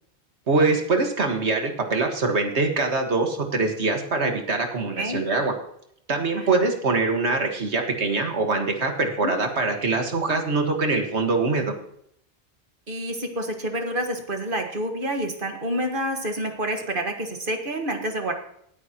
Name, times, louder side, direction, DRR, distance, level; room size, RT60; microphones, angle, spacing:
voice 1, 0.5-5.5 6.1-11.7, right 3 dB, 85° right, 4 dB, 2.0 m, -23 dB
voice 2, 5.0-5.3 6.4-6.6 9.2-9.3 12.9-18.3, right 1 dB, 50° right, 4 dB, 1.8 m, -28 dB
18.0 x 9.4 x 3.0 m, 0.69 s
omnidirectional pair, 1.1 m